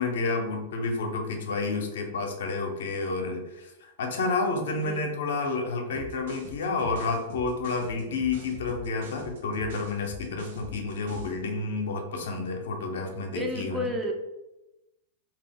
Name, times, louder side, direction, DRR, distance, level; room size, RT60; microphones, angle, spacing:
voice 1, 0.0-13.9, left 3 dB, 75° left, 3 dB, 0.6 m, -30 dB
sound 1, 5.9-11.4, right 1 dB, 70° right, 0.7 m, -43 dB
voice 2, 13.3-14.1, left 1 dB, 15° right, 3 dB, 0.4 m, -32 dB
2.3 x 2.0 x 3.4 m, 0.96 s
hypercardioid pair, 120°, 0 cm